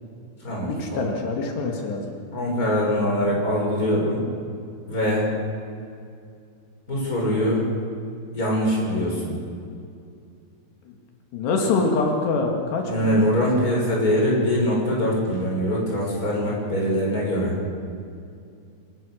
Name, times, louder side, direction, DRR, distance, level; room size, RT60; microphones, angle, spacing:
voice 1, 0.7-2.1 10.9-11.0 11.3-13.2, left 3 dB, 80° left, 2 dB, 4.3 m, -25 dB
voice 2, 2.3-4.2 4.9-5.3 6.9-7.6 8.3-9.4 12.9-17.5, equal, 20° left, -3 dB, 6.3 m, -23 dB
25.5 x 20.0 x 6.5 m, 2.4 s
omnidirectional pair, 4.8 m